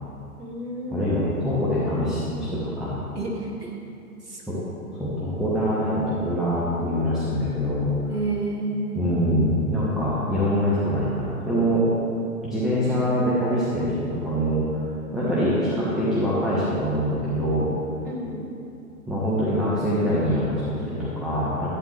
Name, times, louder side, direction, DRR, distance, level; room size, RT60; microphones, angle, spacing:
voice 1, 0.4-1.1 3.2-3.7 4.2-4.6 8.1-9.1 18.0-18.5, right 2 dB, 85° right, -2 dB, 2.3 m, -30 dB
voice 2, 0.9-2.2 2.5-3.0 4.5-4.6 5.0-7.9 8.9-11.8 12.4-14.7 15.1-17.7 19.1-21.7, equal, ahead, -10 dB, 1.3 m, -24 dB
11.5 x 9.2 x 3.3 m, 2.7 s
figure-of-eight pair, 115°, 46 cm